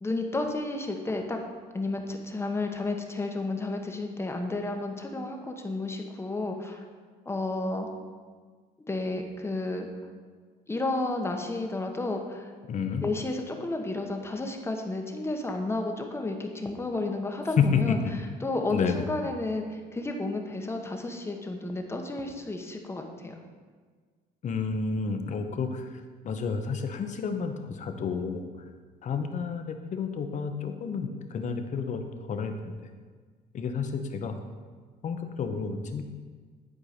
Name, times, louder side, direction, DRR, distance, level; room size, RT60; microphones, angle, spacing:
voice 1, 0.0-1.4 1.7-6.8 7.2-7.9 8.9-9.9 10.7-12.5 13.0-18.0 18.4-23.4, left 2 dB, 15° left, 3 dB, 1.0 m, -32 dB
voice 2, 12.7-13.0 17.6-18.1 18.7-19.0 24.4-28.4 29.0-32.7 33.5-34.4 35.0-36.0, left 5 dB, 45° left, 6 dB, 0.9 m, -30 dB
11.0 x 4.7 x 5.0 m, 1.5 s
cardioid pair, 110°, 17 cm